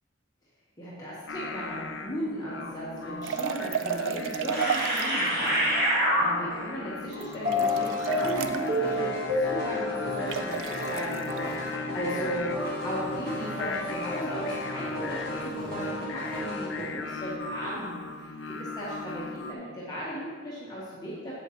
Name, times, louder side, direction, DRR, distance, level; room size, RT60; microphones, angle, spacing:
voice 1, 0.8-9.1 9.4-21.4, equal, 20° left, -8 dB, 1.3 m, -36 dB
Singing, 1.3-19.5, left 4 dB, 70° left, 0.5 m, -38 dB
sound 1, 3.2-5.3 7.1-8.7 10.3-11.4, right 7 dB, 90° right, 0.4 m, -32 dB
sound 2, 3.7-3.8 4.5-6.7 7.4-16.8, equal, 55° right, 1.8 m, -30 dB
7.6 x 7.6 x 3.1 m, 1.5 s
head